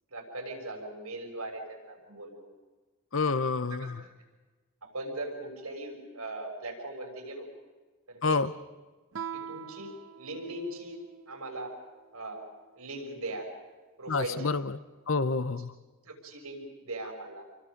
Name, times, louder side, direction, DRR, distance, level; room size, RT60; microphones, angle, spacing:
voice 1, 0.1-2.5 3.1-3.3 3.8-4.1 4.8-7.5 8.1-8.4 9.3-11.0 11.3-11.7 12.1-12.4 12.7-13.5 14.0-14.5 16.0-17.4, right 2 dB, 90° right, 1 dB, 6.6 m, -39 dB
voice 2, 3.1-4.0 8.2-8.5 14.1-14.8 15.1-15.7, left 4 dB, 60° left, 13 dB, 0.8 m, -28 dB
Guitar, 9.1-11.6, right 8 dB, 60° right, 0.7 m, -43 dB
29.5 x 23.5 x 5.3 m, 1.3 s
head